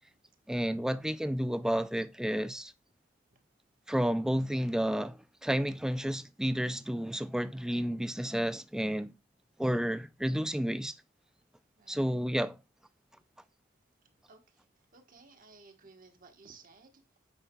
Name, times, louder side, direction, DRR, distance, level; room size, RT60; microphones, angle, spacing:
voice 1, 0.5-2.7 3.9-9.1 9.6-10.9 11.9-12.6, equal, 5° right, 0.3 m, -31 dB
voice 2, 11.8-12.1 14.3-14.6 14.9-17.0, right 4 dB, 45° right, 1.2 m, -57 dB
9.0 x 5.5 x 2.2 m
head